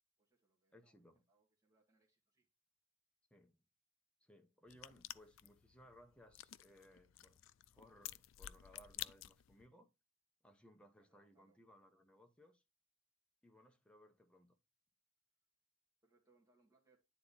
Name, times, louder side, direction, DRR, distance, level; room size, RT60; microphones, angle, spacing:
voice 1, 0.2-2.5 11.0-11.6 16.0-17.0, right 3 dB, 15° right, 1.9 m, -77 dB
voice 2, 0.7-1.2 3.3-3.6 4.2-7.4 7.7-9.9 10.4-12.6 13.4-14.6, equal, 5° left, 1.0 m, -64 dB
sound 1, 4.7-9.7, left 14 dB, 80° left, 0.4 m, -52 dB
10.0 x 3.8 x 4.0 m
head